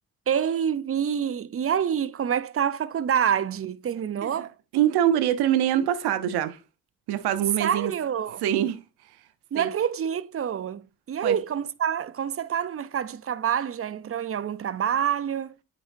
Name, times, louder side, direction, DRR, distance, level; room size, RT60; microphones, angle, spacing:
voice 1, 0.3-4.5 7.6-8.4 9.5-15.5, right 8 dB, 35° right, 0.5 m, -27 dB
voice 2, 4.7-6.6 7.1-7.9 8.4-8.8 9.6-9.7 11.2-11.4, right 11 dB, 80° right, 0.8 m, -24 dB
8.7 x 5.1 x 2.6 m
supercardioid pair, 50°, 38 cm